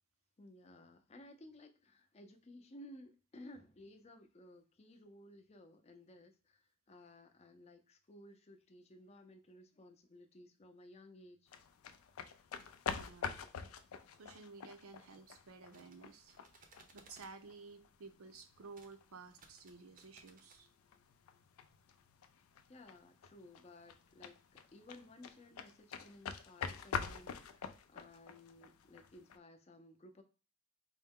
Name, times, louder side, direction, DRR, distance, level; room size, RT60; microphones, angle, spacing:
voice 1, 0.4-11.5 22.7-30.2, left 1 dB, 30° left, 5 dB, 0.5 m, -57 dB
sound 1, 11.5-29.4, left 6 dB, 90° left, 0.4 m, -46 dB
voice 2, 12.9-13.4 14.2-16.3 16.6-20.7, right 4 dB, 80° right, 8 dB, 0.6 m, -54 dB
sound 2, 15.5-17.4 18.7-19.0 19.3-20.6, right 3 dB, 40° right, 0.6 m, -63 dB
4.5 x 2.1 x 3.5 m, 0.34 s
head